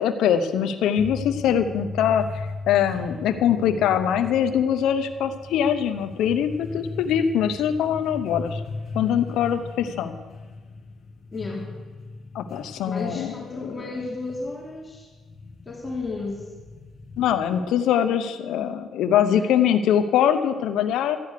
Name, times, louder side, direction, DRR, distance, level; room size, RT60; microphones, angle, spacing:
voice 1, 0.0-8.6 8.9-10.1 12.3-13.9 17.2-21.2, left 9 dB, 85° left, 8 dB, 0.8 m, -23 dB
sound 1, 1.0-17.7, left 3 dB, 50° left, 1.5 m, -38 dB
voice 2, 11.3-11.7 12.9-15.1 15.7-16.5 19.3-19.4, left 3 dB, 25° left, -2 dB, 2.6 m, -33 dB
13.5 x 9.5 x 6.7 m, 1.3 s
cardioid pair, 90°, 0 cm